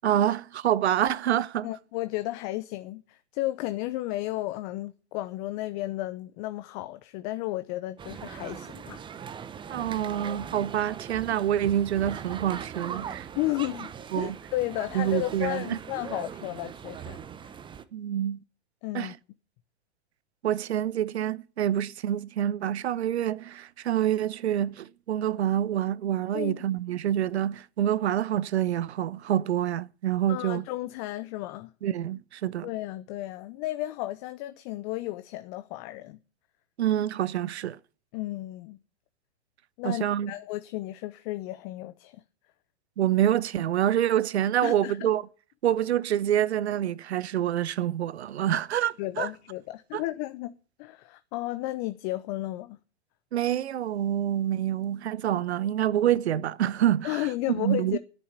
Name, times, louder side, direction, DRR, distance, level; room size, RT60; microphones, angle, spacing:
voice 1, 0.0-1.7 9.7-13.3 14.1-14.4 14.9-15.8 17.9-18.4 18.9-19.2 20.4-30.6 31.8-32.7 36.8-37.8 39.8-40.3 43.0-45.3 45.6-49.3 49.9-50.0 53.3-58.0, right 11 dB, 75° right, 0.8 m, -27 dB
voice 2, 1.6-9.0 13.3-17.5 18.8-19.1 26.3-26.7 30.3-31.7 32.6-36.2 38.1-38.8 39.8-42.2 44.6-45.1 49.0-52.8 57.0-58.0, left 17 dB, 35° left, 0.7 m, -33 dB
sound 1, 8.0-17.8, right 7 dB, 15° right, 0.8 m, -40 dB
10.5 x 8.6 x 9.8 m
hypercardioid pair, 125°, 33 cm